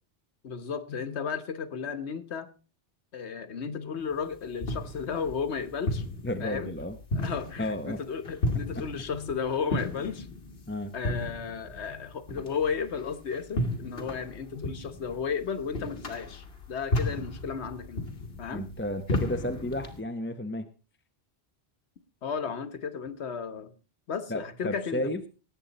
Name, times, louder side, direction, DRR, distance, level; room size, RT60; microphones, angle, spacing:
voice 1, 0.4-2.5 3.1-6.0 6.4-6.7 7.1-10.3 10.9-18.0 18.4-18.7 22.2-23.7 24.1-25.1, left 6 dB, 85° left, 11 dB, 1.4 m, -34 dB
sound 1, 4.1-20.0, left 1 dB, 65° left, 1.9 m, -34 dB
voice 2, 6.2-7.0 7.6-8.0 8.7-8.8 10.7-10.9 18.5-20.7 24.3-25.2, left 1 dB, 10° left, 8 dB, 0.8 m, -32 dB
19.0 x 8.1 x 4.0 m, 0.33 s
omnidirectional pair, 1.1 m